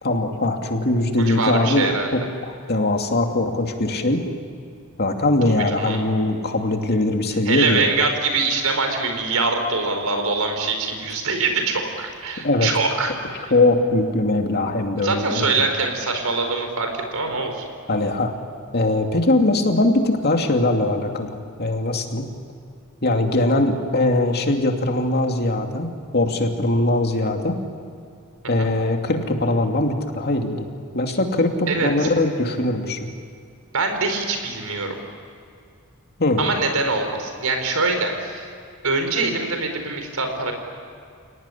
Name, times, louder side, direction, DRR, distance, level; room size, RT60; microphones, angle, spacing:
voice 1, 0.0-2.2 2.7-4.2 5.0-7.8 12.4-12.7 13.5-15.6 17.9-18.3 18.7-21.3 21.6-22.3 23.0-25.9 26.1-27.6 28.5-30.7 30.9-33.1 36.2-36.4, left 2 dB, 50° left, 3 dB, 2.6 m, -21 dB
voice 2, 1.1-2.1 5.7-6.0 7.4-13.1 13.4-13.5 15.0-17.6 28.6-28.7 31.7-32.1 33.7-35.0 36.4-38.5 38.8-40.5, right 3 dB, 85° right, 5 dB, 4.7 m, -23 dB
29.5 x 19.0 x 10.0 m, 2.4 s
head